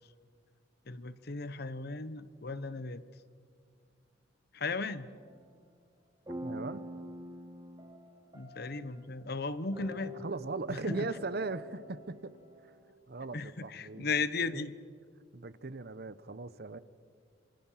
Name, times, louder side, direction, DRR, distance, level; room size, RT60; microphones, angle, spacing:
voice 1, 0.9-3.0 4.5-5.1 8.3-10.1 10.7-11.1 13.3-14.7, left 3 dB, 60° left, 14 dB, 1.0 m, -36 dB
sound 1, 5.2-5.6 6.3-9.0 9.7-12.9, right 1 dB, 20° right, 3.0 m, -46 dB
voice 2, 6.4-6.8 10.2-12.3 13.1-14.1 14.5-14.7 15.3-16.8, right 3 dB, 60° right, 15 dB, 0.9 m, -38 dB
27.5 x 25.5 x 5.8 m, 2.1 s
head